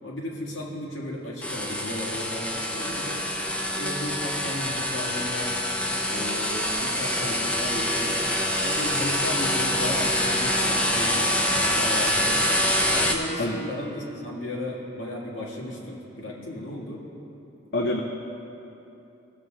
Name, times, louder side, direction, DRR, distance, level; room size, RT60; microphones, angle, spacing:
voice 1, 0.0-3.2 3.7-5.5 6.1-8.2 8.6-12.5 12.8-17.0, left 1 dB, 90° left, -4 dB, 1.8 m, -34 dB
sound 1, 1.4-13.1, left 1 dB, 5° left, 0.6 m, -25 dB
voice 2, 13.4-13.6 17.7-18.0, left 1 dB, 55° left, 1 dB, 0.6 m, -25 dB
16.5 x 6.7 x 3.9 m, 2.9 s
head